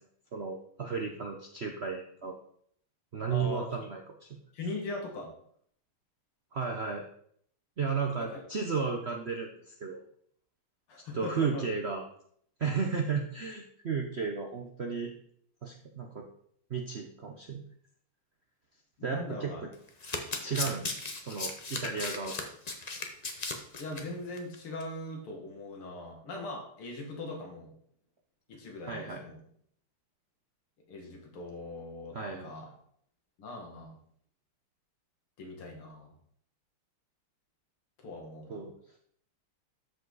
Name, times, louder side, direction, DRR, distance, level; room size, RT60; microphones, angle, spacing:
voice 1, 0.3-2.4 3.1-4.3 6.5-7.0 7.8-9.5 9.8-10.0 11.1-12.0 12.6-15.1 15.6-16.3 16.7-17.6 19.0-19.7 20.4-22.3 28.9-29.2 32.1-32.5 38.5-38.7, right 5 dB, 70° right, 2 dB, 0.6 m, -34 dB
voice 2, 3.3-3.7 4.5-5.3 8.2-8.4 10.9-11.7 19.0-19.6 20.6-20.8 23.8-27.7 28.5-29.4 30.9-32.7 33.4-34.0 35.4-36.1 38.0-38.7, left 2 dB, 80° left, 1 dB, 2.8 m, -40 dB
Domestic sounds home sounds, 19.9-24.0 24.4-24.6 24.8-24.9, left 3 dB, 55° left, 0.4 m, -36 dB
13.0 x 5.2 x 4.0 m, 0.65 s
omnidirectional pair, 2.3 m